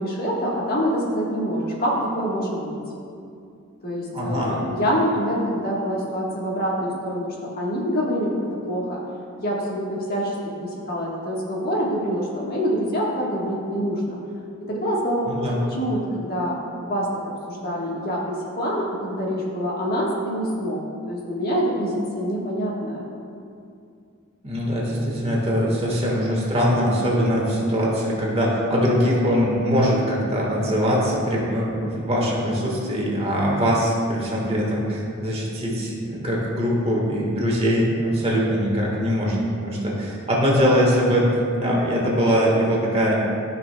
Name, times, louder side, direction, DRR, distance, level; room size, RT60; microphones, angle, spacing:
voice 1, 0.0-2.8 3.8-8.3 8.6-9.0 9.4-14.2 14.7-17.0 17.5-20.8 21.1-23.0, equal, 45° left, -4 dB, 1.4 m, -26 dB
voice 2, 4.1-4.6 15.3-15.6 24.4-41.3 41.6-43.2, equal, 30° right, -4 dB, 1.5 m, -22 dB
13.5 x 5.6 x 2.2 m, 2.5 s
head